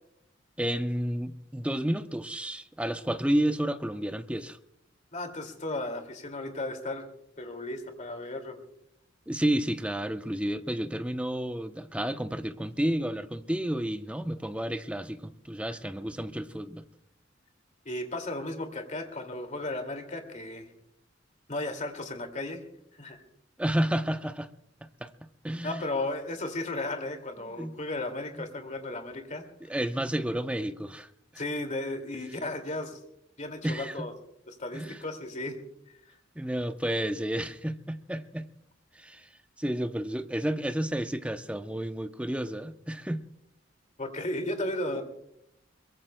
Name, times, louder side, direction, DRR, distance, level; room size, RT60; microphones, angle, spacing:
voice 1, 0.6-4.6 9.3-16.8 23.6-24.5 25.0-25.1 25.4-25.8 27.4-27.7 29.6-31.1 33.6-34.0 34.7-35.0 36.4-38.5 38.9-39.3 39.6-43.3, right 1 dB, 5° right, 0.6 m, -31 dB
voice 2, 5.1-7.0 7.4-8.6 17.9-20.7 21.5-22.6 22.9-23.2 25.6-29.4 31.4-33.0 33.4-34.1 34.5-35.6 36.0-36.1 44.0-45.0, left 2 dB, 40° left, 2.3 m, -35 dB
23.0 x 22.5 x 2.2 m
head